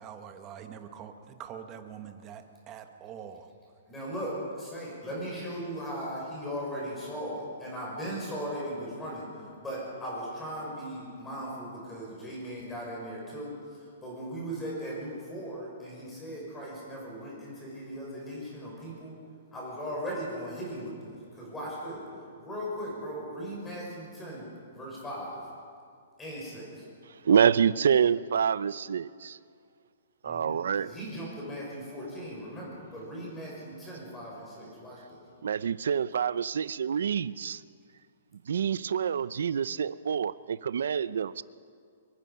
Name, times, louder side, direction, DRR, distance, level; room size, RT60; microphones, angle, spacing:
voice 1, 0.0-3.5, right 8 dB, 20° right, 6 dB, 1.2 m, -44 dB
voice 2, 3.9-9.3 9.6-13.5 14.0-19.2 19.5-22.0 22.4-25.4 26.2-26.8 30.2-35.2, equal, 10° left, -4 dB, 6.0 m, -38 dB
voice 3, 27.2-29.4 30.2-30.9 35.4-37.6 38.5-41.4, right 7 dB, 75° right, 17 dB, 0.6 m, -27 dB
24.5 x 22.5 x 5.6 m, 2.2 s
hypercardioid pair, 175°, 0 cm